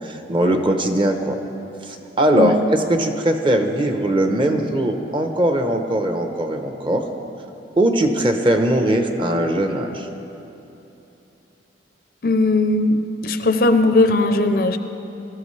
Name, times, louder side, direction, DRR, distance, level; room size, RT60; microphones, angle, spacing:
voice 1, 0.0-1.4 1.8-7.1 7.8-10.1, right 1 dB, 25° right, 5 dB, 0.8 m, -20 dB
voice 2, 12.2-14.8, left 2 dB, 55° left, 9 dB, 0.5 m, -18 dB
18.5 x 13.5 x 3.2 m, 2.9 s
head